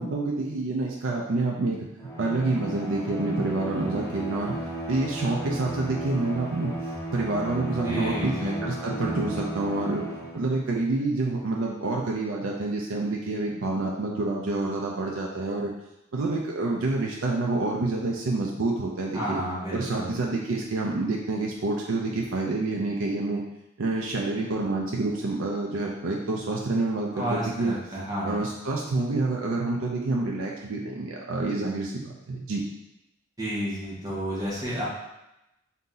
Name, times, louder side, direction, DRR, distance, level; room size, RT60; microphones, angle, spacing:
voice 1, 0.0-1.8 2.2-4.6 4.9-6.7 7.1-10.0 10.3-15.7 16.1-19.4 19.7-23.4 23.8-27.7 28.2-32.6, right 2 dB, 80° right, -2 dB, 0.5 m, -28 dB
Bowed string instrument, 2.0-10.5, right 1 dB, 15° left, 0.6 m, -34 dB
voice 2, 7.8-8.5 19.1-20.1 27.1-28.4 33.4-34.9, equal, 20° right, -8 dB, 1.4 m, -31 dB
4.0 x 2.7 x 3.8 m, 0.91 s
head